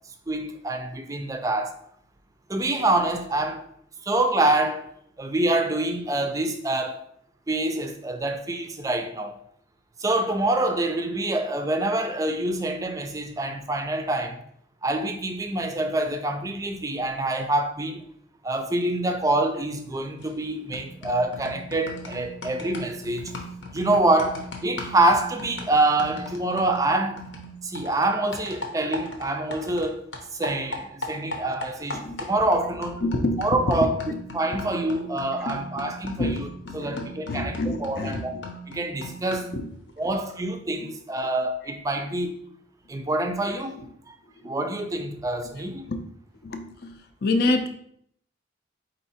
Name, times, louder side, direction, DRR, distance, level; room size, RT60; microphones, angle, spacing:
voice 1, 0.3-1.8 2.5-3.6 4.0-4.9 5.2-7.0 7.5-9.3 10.0-14.4 14.8-18.0 18.4-23.3 23.7-27.3 27.6-30.0 30.3-33.0 33.4-34.0 34.3-36.5 36.7-38.4 38.7-39.5 40.0-42.4 42.9-43.8 44.1-44.2 44.4-45.9, right 2 dB, 20° right, 0.4 m, -26 dB
sound 1, 20.2-20.5 20.7-29.9 30.1-39.6, left 1 dB, 80° left, 0.9 m, -38 dB
voice 2, 31.9-32.2 33.0-33.9 34.5-34.6 35.4-38.4 39.5-39.7 40.8-40.9 45.9-46.0 46.4-46.9 47.2-47.7, left 2 dB, 55° left, 0.5 m, -28 dB
4.5 x 2.8 x 4.1 m
head